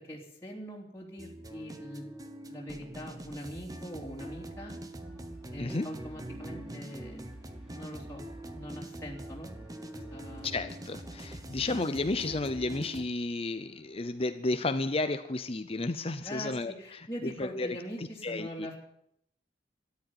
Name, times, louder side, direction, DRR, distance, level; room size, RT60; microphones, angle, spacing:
voice 1, 0.0-2.1 2.4-4.7 5.5-7.2 7.7-9.5 9.9-10.5 16.2-18.8, equal, 15° left, -4 dB, 3.1 m, -43 dB
sound 1, 1.2-13.0, right 1 dB, 20° right, 1.2 m, -43 dB
sound 2, 5.0-14.5, right 1 dB, 5° right, 4.6 m, -57 dB
voice 2, 10.4-16.7 17.2-18.7, left 2 dB, 35° left, 10 dB, 0.7 m, -32 dB
13.5 x 10.5 x 9.6 m, 0.77 s
head